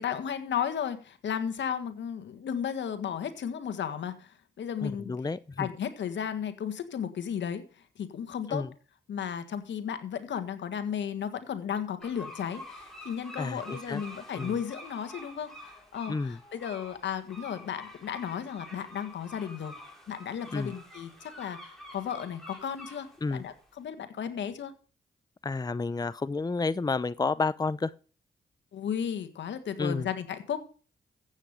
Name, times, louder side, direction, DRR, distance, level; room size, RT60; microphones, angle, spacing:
voice 1, 0.0-5.1 5.6-8.6 9.1-19.7 20.1-24.7 28.7-30.6, left 8 dB, 80° left, 1.7 m, -34 dB
voice 2, 4.8-5.7 8.5-8.7 13.4-14.0 14.3-14.5 16.1-16.4 20.5-20.7 23.2-23.4 25.4-27.9 29.8-30.1, left 3 dB, 20° left, 0.6 m, -30 dB
sound 1, 12.0-23.7, left 1 dB, ahead, 5.3 m, -48 dB
14.5 x 8.4 x 5.1 m
cardioid pair, 60°, 19 cm